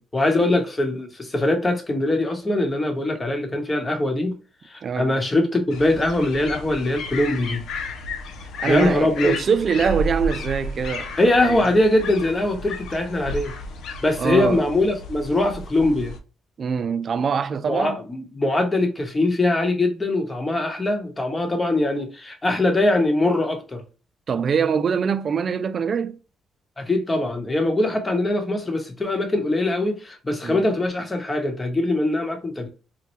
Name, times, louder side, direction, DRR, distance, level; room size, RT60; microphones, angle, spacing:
voice 1, 0.1-4.4 4.6-7.6 8.6-9.3 11.2-13.5 14.0-16.1 17.7-23.8 26.8-32.7, left 2 dB, 25° left, 1.0 m, -22 dB
voice 2, 4.8-5.2 8.6-11.1 11.4-11.6 14.2-14.6 16.6-18.0 24.3-26.2 30.4-30.6, right 6 dB, 50° right, 0.3 m, -23 dB
sound 1, 5.7-16.2, left 2 dB, 80° left, 0.5 m, -33 dB
4.2 x 2.2 x 3.0 m
cardioid pair, 90°, 0 cm